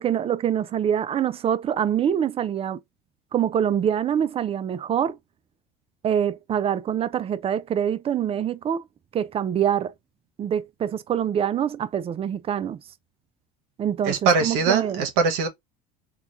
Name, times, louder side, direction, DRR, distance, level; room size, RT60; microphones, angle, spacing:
voice 1, 0.0-2.8 3.3-5.2 6.0-8.8 9.1-9.9 10.4-12.8 13.8-15.0, right 9 dB, 30° right, 0.4 m, -25 dB
voice 2, 14.0-15.5, right 5 dB, 75° right, 0.9 m, -22 dB
3.9 x 2.3 x 2.9 m
hypercardioid pair, 85°, 20 cm